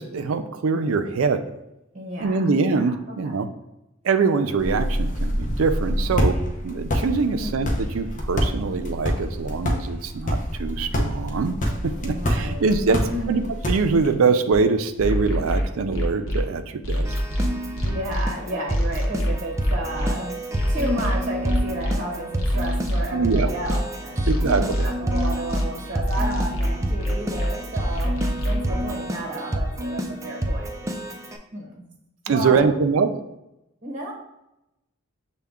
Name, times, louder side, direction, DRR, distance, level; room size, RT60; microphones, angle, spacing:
voice 1, 0.0-1.4 2.2-3.5 4.0-6.4 6.6-11.6 11.8-13.0 13.3-13.4 13.7-16.6 16.9-17.1 23.1-23.5 24.3-24.8 32.3-33.1, right 4 dB, 85° right, 9 dB, 0.4 m, -23 dB
voice 2, 1.9-3.4 7.2-7.5 12.0-13.3 17.8-20.4 20.7-28.2 28.4-30.7 31.5-31.9 32.3-32.6 33.8-34.1, right 1 dB, 40° right, -1 dB, 0.9 m, -32 dB
sound 1, 4.6-14.1, equal, 40° left, 0.6 m, -26 dB
sound 2, 14.5-14.6 15.0-16.4 16.8-18.3 18.7-20.1 20.5-21.9 22.4-23.8 24.2-25.6 26.1-27.5 27.9-28.6, equal, 70° left, 0.8 m, -25 dB
Keyboard (musical), 17.0-31.4, right 1 dB, 15° right, 0.4 m, -29 dB
6.6 x 2.2 x 3.5 m, 0.90 s
head